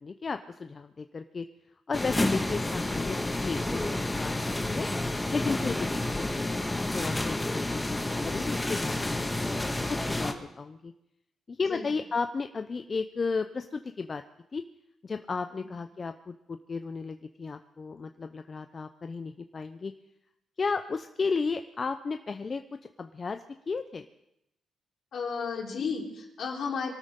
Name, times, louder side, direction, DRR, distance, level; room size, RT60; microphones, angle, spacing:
voice 1, 0.0-1.4 1.9-4.9 5.3-7.4 7.7-9.5 9.9-10.9 11.5-14.2 14.5-14.6 15.0-19.9 20.6-22.6 23.0-24.1, left 4 dB, 40° left, 8 dB, 0.6 m, -34 dB
sound 1, 1.9-10.3, left 1 dB, 15° left, 1.7 m, -30 dB
voice 2, 25.1-26.9, left 5 dB, 65° left, -1 dB, 3.5 m, -33 dB
23.5 x 13.0 x 3.7 m, 0.83 s
cardioid pair, 70°, 0 cm